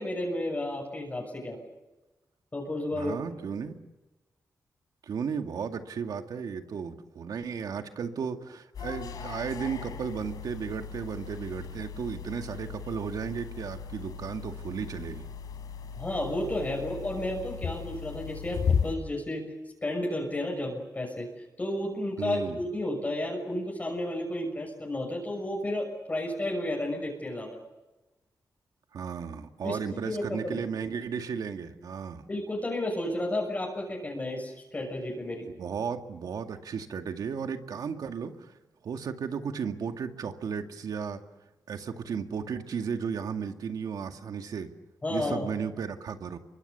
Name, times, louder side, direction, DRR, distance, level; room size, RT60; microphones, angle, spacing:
voice 1, 0.0-1.6 2.5-3.1 3.5-3.6 15.9-19.5 19.8-21.3 21.6-27.6 29.6-30.6 32.3-35.5 45.0-45.5, left 1 dB, 25° left, -1 dB, 6.5 m, -32 dB
voice 2, 2.9-3.8 5.0-15.3 22.2-22.6 28.9-32.2 35.5-38.5 38.8-41.2 41.7-44.7 45.1-46.4, right 6 dB, 80° right, 6 dB, 2.2 m, -34 dB
sound 1, 8.7-19.0, left 6 dB, 85° left, 3.4 m, -36 dB
29.5 x 24.5 x 7.0 m, 1.1 s
wide cardioid pair, 110°, 6 cm